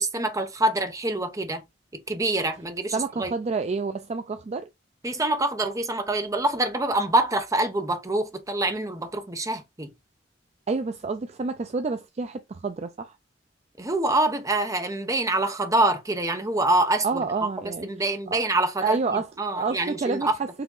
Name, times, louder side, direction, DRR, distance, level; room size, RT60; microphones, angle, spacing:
voice 1, 0.0-1.6 1.9-3.3 5.0-9.9 13.8-17.3 17.8-19.0 19.4-20.3, right 2 dB, 20° right, 0.8 m, -25 dB
voice 2, 2.9-4.7 10.7-13.2 17.0-17.9 18.3-18.4 18.8-20.5, right 4 dB, 35° right, 0.4 m, -29 dB
4.7 x 2.9 x 3.7 m
head